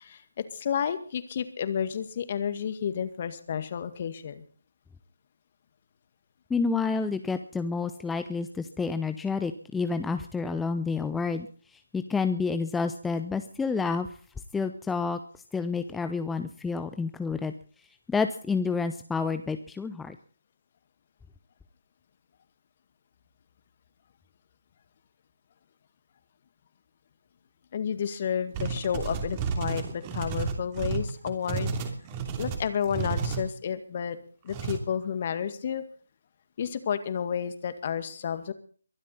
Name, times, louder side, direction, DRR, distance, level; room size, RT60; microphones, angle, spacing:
voice 1, 0.0-4.4 27.7-31.7 32.4-34.2 34.4-35.8 36.6-38.5, left 8 dB, 40° left, 11 dB, 2.0 m, -31 dB
voice 2, 6.5-11.5 11.9-14.1 14.5-15.2 15.5-17.5 18.1-20.2, left 4 dB, 5° left, 9 dB, 0.7 m, -29 dB
sound 1, 28.5-33.4 34.5-34.8, right 5 dB, 25° right, 3.0 m, -32 dB
23.0 x 12.0 x 4.2 m, 0.43 s
figure-of-eight pair, 150°, 0 cm